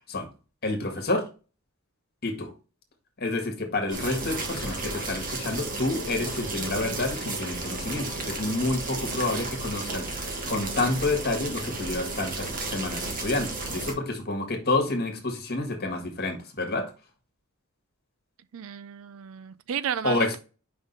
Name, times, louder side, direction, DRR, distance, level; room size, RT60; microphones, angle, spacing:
voice 1, 0.6-1.3 2.2-2.5 3.2-16.9 20.0-20.4, left 2 dB, 45° left, 1.7 m, -29 dB
sound 1, 3.9-13.9, right 2 dB, 40° right, 1.5 m, -33 dB
voice 2, 18.5-20.4, right 8 dB, 65° right, 0.4 m, -33 dB
5.3 x 3.6 x 5.4 m
head